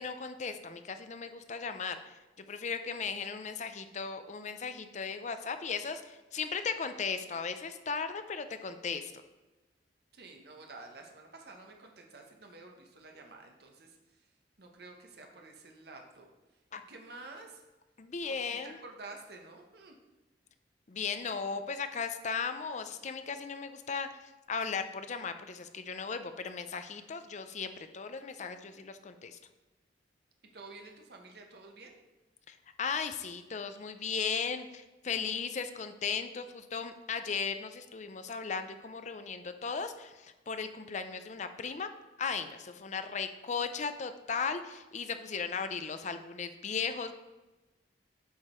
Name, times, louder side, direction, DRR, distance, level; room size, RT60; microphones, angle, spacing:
voice 1, 0.0-2.1 2.5-9.1 16.7-16.8 18.0-18.8 20.9-24.1 24.5-29.4 32.5-41.9 42.2-47.1, left 5 dB, 40° left, 9 dB, 0.5 m, -36 dB
voice 2, 10.1-14.3 14.6-16.3 16.9-17.6 18.2-20.0 30.5-32.0, right 3 dB, 60° right, 2 dB, 1.0 m, -50 dB
8.1 x 5.0 x 4.3 m, 1.1 s
head